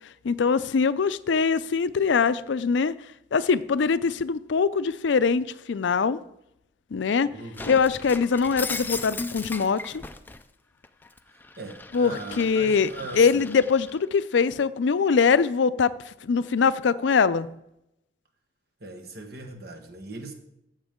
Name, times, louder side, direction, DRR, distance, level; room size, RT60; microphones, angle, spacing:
voice 1, 0.2-2.9 3.3-6.2 6.9-7.3 7.7-10.0 11.9-17.5, left 5 dB, 80° left, 0.4 m, -23 dB
voice 2, 7.2-7.8 11.6-13.5 18.8-20.3, right 2 dB, 55° right, 1.5 m, -39 dB
Shatter, 7.5-10.4 10.8-14.0, left 3 dB, 10° left, 0.4 m, -37 dB
14.5 x 7.3 x 3.7 m
head